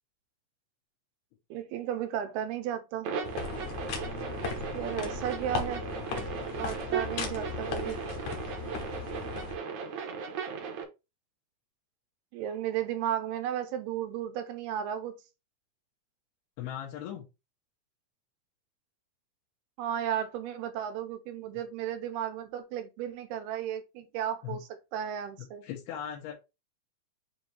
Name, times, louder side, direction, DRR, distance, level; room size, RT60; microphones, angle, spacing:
voice 1, 1.5-3.1 4.7-5.8 6.6-8.0 12.3-15.2 19.8-25.7, right 10 dB, 85° right, 2.9 m, -34 dB
sound 1, 3.0-10.8, right 6 dB, 65° right, 1.9 m, -37 dB
sound 2, 3.2-9.6, left 6 dB, 65° left, 2.0 m, -37 dB
voice 2, 16.6-17.2 24.4-24.6 25.6-26.3, left 10 dB, 85° left, 3.3 m, -38 dB
7.3 x 2.8 x 4.6 m
omnidirectional pair, 4.4 m